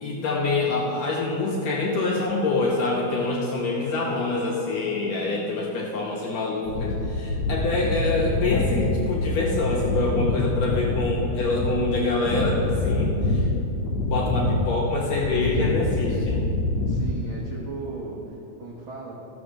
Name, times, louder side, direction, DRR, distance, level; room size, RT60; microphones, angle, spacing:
voice 1, 0.0-13.5 14.1-16.4, left 3 dB, 70° left, -2 dB, 1.7 m, -26 dB
sound 1, 6.7-17.8, left 2 dB, 85° left, 1.5 m, -26 dB
voice 2, 16.9-19.1, right 3 dB, 75° right, -5 dB, 1.1 m, -36 dB
14.5 x 5.3 x 6.3 m, 2.9 s
omnidirectional pair, 4.1 m